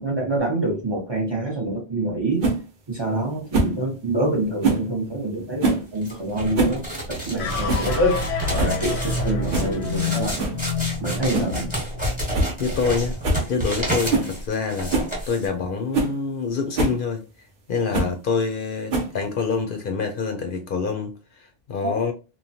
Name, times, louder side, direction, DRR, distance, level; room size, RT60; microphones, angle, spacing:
voice 1, 0.0-2.5 2.9-8.2 8.5-10.5 11.0-11.7 21.8-22.0, right 1 dB, 30° right, 0.6 m, -26 dB
sound 1, 2.4-2.6 3.5-3.8 4.6-4.9 5.6-5.9 6.4-6.8 7.1-7.2 7.7-7.9 8.3-8.4 8.6-8.8 9.5-9.7 10.4-10.6 11.3-11.6 11.9-12.0 12.3-12.5 12.8-12.9 13.2-13.5 14.1-14.3 14.9-15.1 15.6-15.7 15.9-16.1 16.8-17.0 17.9-18.2 18.9-19.3, right 2 dB, 60° right, 0.9 m, -23 dB
sound 2, 6.0-15.5, equal, 10° right, 1.0 m, -30 dB
sound 3, 7.4-13.8, left 3 dB, 85° left, 0.9 m, -29 dB
voice 2, 12.6-13.2 13.5-14.9 15.3-17.2 17.7-22.1, left 5 dB, 60° left, 0.7 m, -26 dB
3.0 x 2.1 x 2.6 m
omnidirectional pair, 1.1 m